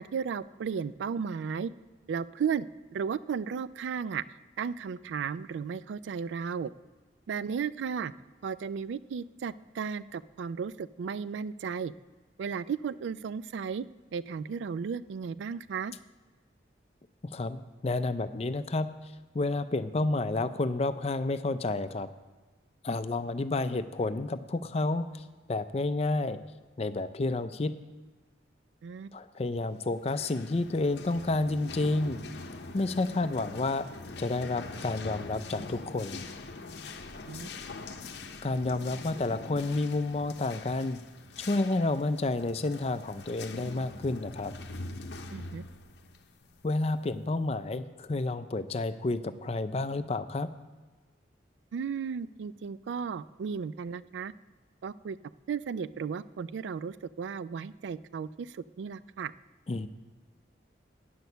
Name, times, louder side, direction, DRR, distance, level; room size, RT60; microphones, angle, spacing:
voice 1, 0.0-1.7 2.1-2.6 2.9-6.7 7.3-8.1 8.4-11.9 12.4-13.8 14.1-15.9 28.8-29.1 37.3-37.5 45.3-45.7 51.7-54.3 54.8-55.2 55.5-59.3, right 6 dB, 80° right, 16 dB, 0.3 m, -34 dB
voice 2, 17.3-18.9 19.3-22.1 22.8-26.4 26.8-27.7 29.1-32.2 32.7-33.9 34.2-36.2 38.4-41.0 41.4-44.5 46.6-50.5 59.7-59.9, left 2 dB, 35° left, 11 dB, 0.4 m, -30 dB
sound 1, 29.9-47.3, left 3 dB, 65° left, 0.7 m, -44 dB
9.5 x 6.2 x 6.7 m, 1.3 s
head